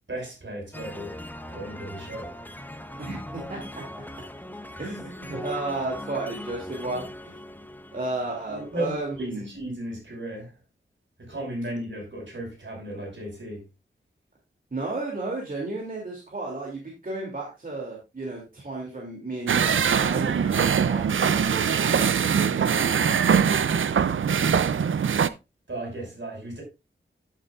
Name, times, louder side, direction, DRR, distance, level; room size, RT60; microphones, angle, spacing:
voice 1, 0.1-1.2 1.5-2.4 5.3-5.4 8.5-10.6 11.2-13.6 25.7-26.6, right 1 dB, 70° right, 5.6 m, -35 dB
sound 1, 0.7-9.3, left 1 dB, 10° left, 0.8 m, -40 dB
voice 2, 3.0-3.8 4.8-7.4 7.9-9.5 14.7-23.2, right 2 dB, 45° right, 2.8 m, -33 dB
sound 2, 19.5-25.3, right 7 dB, 85° right, 0.5 m, -22 dB
10.5 x 9.0 x 2.5 m
wide cardioid pair, 85°, 20 cm